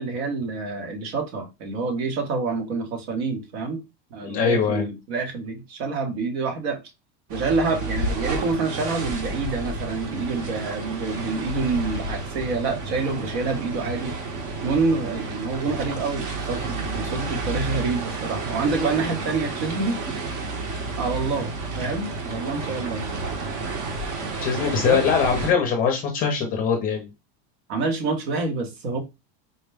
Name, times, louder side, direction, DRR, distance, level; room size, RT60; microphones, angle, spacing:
voice 1, 0.0-3.8 4.1-6.8 7.3-14.2 14.6-20.0 21.0-23.1 24.8-25.0 27.7-29.0, right 4 dB, 75° right, 1.3 m, -27 dB
voice 2, 4.2-4.9 24.4-27.1, left 6 dB, 30° left, 0.5 m, -22 dB
sound 1, 7.3-25.5, right 3 dB, 50° right, 1.0 m, -31 dB
4.1 x 2.2 x 3.3 m
supercardioid pair, 175°, 31 cm